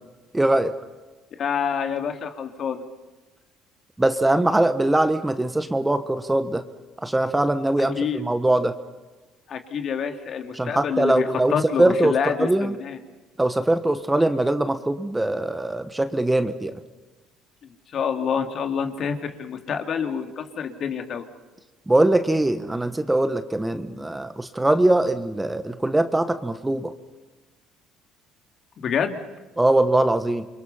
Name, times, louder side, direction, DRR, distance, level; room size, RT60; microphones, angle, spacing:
voice 1, 0.3-0.7 4.0-6.6 7.0-8.7 10.5-12.7 13.4-16.7 21.9-26.9 29.6-30.5, right 1 dB, 10° right, 10 dB, 1.4 m, -22 dB
voice 2, 1.4-2.8 7.8-8.2 9.5-13.0 17.6-21.2 28.8-29.2, left 7 dB, 50° left, 6 dB, 2.7 m, -27 dB
28.5 x 23.0 x 5.7 m, 1.2 s
supercardioid pair, 90°, 0 cm